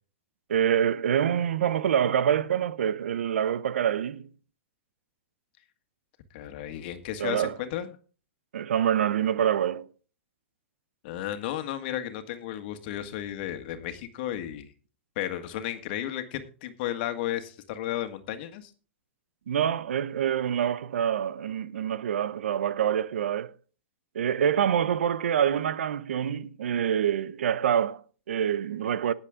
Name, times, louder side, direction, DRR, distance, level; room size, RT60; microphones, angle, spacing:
voice 1, 0.5-4.3 7.2-7.5 8.5-9.9 19.5-23.5 24.1-29.1, right 9 dB, 80° right, 0.9 m, -26 dB
voice 2, 6.3-8.0 11.0-14.7 15.2-18.7, left 12 dB, 50° left, 1.8 m, -33 dB
18.5 x 7.3 x 3.7 m
hypercardioid pair, 140°, 7 cm